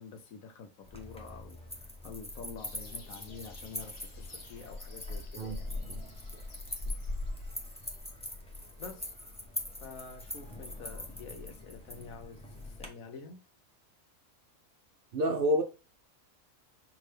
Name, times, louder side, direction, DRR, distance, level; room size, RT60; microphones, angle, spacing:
voice 1, 0.0-5.7 8.8-9.1 9.8-13.4, left 5 dB, 80° left, 1.2 m, -48 dB
sound 1, 0.8-12.9, left 1 dB, 5° left, 0.5 m, -44 dB
sound 2, 2.6-8.0, left 2 dB, 50° left, 1.2 m, -41 dB
voice 2, 15.1-15.6, equal, 60° right, 0.6 m, -28 dB
5.9 x 2.7 x 3.3 m
omnidirectional pair, 1.4 m